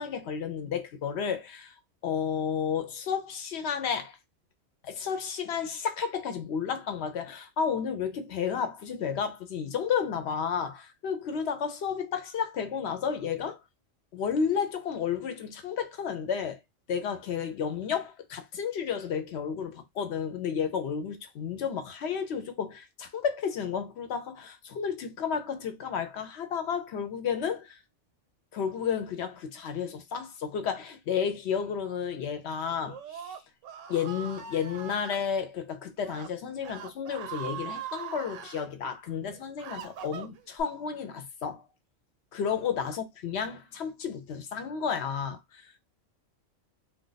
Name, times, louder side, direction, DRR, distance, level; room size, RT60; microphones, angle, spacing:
voice 1, 0.0-1.7 2.0-4.2 4.8-13.6 14.1-16.6 16.9-27.8 28.5-33.4 33.9-41.6 42.3-45.8, left 7 dB, 65° left, 0.9 m, -32 dB
Screaming, 32.8-35.2 36.0-36.3 36.6-38.7 39.2-40.6, right 8 dB, 90° right, 1.0 m, -41 dB
2.4 x 2.3 x 3.8 m
omnidirectional pair, 1.3 m